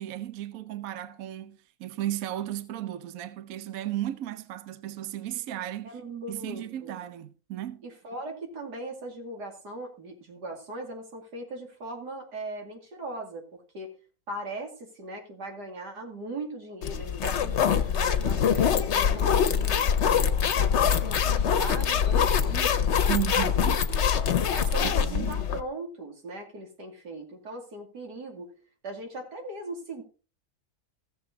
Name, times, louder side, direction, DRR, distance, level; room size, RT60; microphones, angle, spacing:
voice 1, 0.0-6.0 6.3-7.8 23.1-23.8 24.8-25.4, right 13 dB, 65° right, 1.0 m, -34 dB
voice 2, 5.8-7.0 7.8-13.9 14.3-19.9 20.2-23.5 23.9-24.0 24.5-28.5 28.8-30.0, right 2 dB, 90° right, 3.1 m, -39 dB
sound 1, 16.8-25.6, left 7 dB, 55° left, 0.9 m, -24 dB
15.5 x 7.1 x 4.0 m
omnidirectional pair, 1.7 m